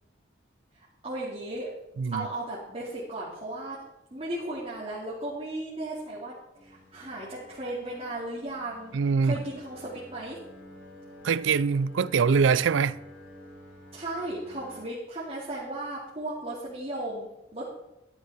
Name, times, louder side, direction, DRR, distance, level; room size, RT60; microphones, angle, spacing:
voice 1, 1.0-1.7 2.1-3.8 4.1-6.4 6.6-8.9 9.2-10.4 13.9-17.6, right 1 dB, 30° right, 2.4 m, -35 dB
voice 2, 2.0-2.3 8.9-9.4 11.2-13.0, right 5 dB, 75° right, 0.4 m, -23 dB
sound 1, 6.5-14.8, equal, 65° left, 3.3 m, -50 dB
12.5 x 10.5 x 4.2 m
head